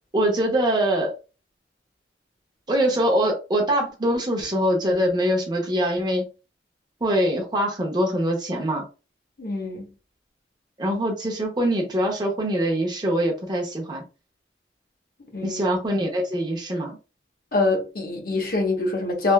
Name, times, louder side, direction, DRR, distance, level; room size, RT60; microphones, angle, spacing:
voice 1, 0.1-1.1 2.7-6.3 7.0-8.8 10.8-14.0 15.4-16.9, equal, 25° right, 0.7 m, -23 dB
voice 2, 9.4-9.8 15.3-15.6 17.5-19.3, left 3 dB, 55° left, 1.0 m, -24 dB
3.3 x 2.4 x 2.2 m
head